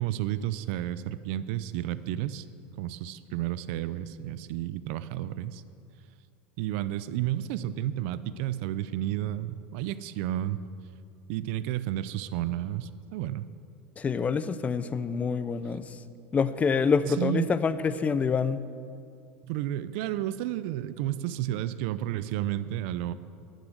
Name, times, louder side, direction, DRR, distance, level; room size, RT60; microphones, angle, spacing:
voice 1, 0.0-2.5 2.8-5.6 6.6-10.6 11.3-13.5 17.1-17.5 19.4-23.1, right 13 dB, 65° right, 14 dB, 0.6 m, -31 dB
voice 2, 14.0-15.9 16.3-18.6, left 5 dB, 20° left, 14 dB, 0.6 m, -26 dB
12.0 x 9.2 x 7.9 m, 2.4 s
supercardioid pair, 120°, 7 cm